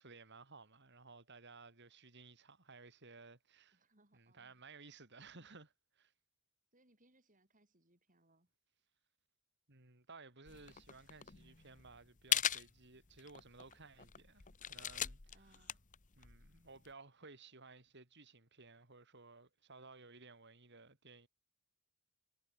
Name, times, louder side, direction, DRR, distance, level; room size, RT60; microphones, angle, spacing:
voice 1, 0.0-3.8 4.1-6.1 9.7-15.7 16.2-21.3, right 3 dB, 50° right, 3.6 m, -58 dB
voice 2, 3.7-4.6 6.7-8.5 15.3-15.8, right 1 dB, 35° right, 8.0 m, -71 dB
sound 1, 10.5-16.9, left 10 dB, 35° left, 1.1 m, -41 dB
head